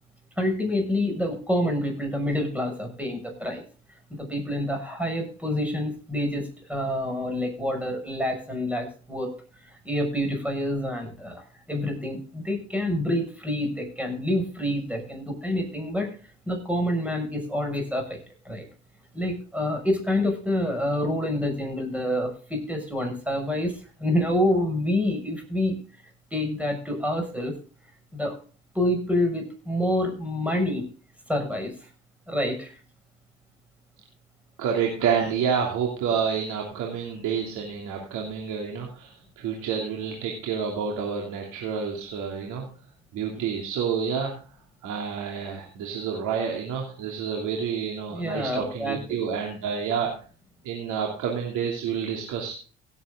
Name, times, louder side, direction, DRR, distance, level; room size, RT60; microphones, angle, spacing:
voice 1, 0.4-3.6 4.1-9.3 9.8-16.1 16.5-18.2 18.4-18.6 19.1-25.8 26.3-27.6 28.1-28.4 28.7-30.9 31.3-31.7 32.3-32.8 43.3-43.4 48.1-49.0, left 1 dB, 5° right, 3 dB, 6.0 m, -27 dB
voice 2, 34.6-42.6 43.1-44.3 44.8-50.1 50.6-52.5, right 7 dB, 75° right, 0 dB, 2.9 m, -29 dB
17.0 x 8.4 x 3.8 m, 0.39 s
supercardioid pair, 80°, 30 cm